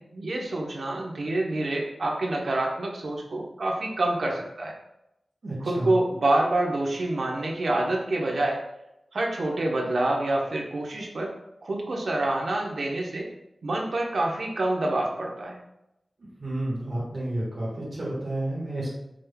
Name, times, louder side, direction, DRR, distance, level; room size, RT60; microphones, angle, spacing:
voice 1, 0.0-4.7 5.6-8.6 9.1-11.3 11.6-13.3 13.6-15.6, right 2 dB, 75° right, 0 dB, 0.8 m, -27 dB
voice 2, 5.4-5.9 16.4-18.9, right 1 dB, 55° right, -8 dB, 1.3 m, -31 dB
5.1 x 3.4 x 2.2 m, 0.87 s
wide cardioid pair, 100°, 0 cm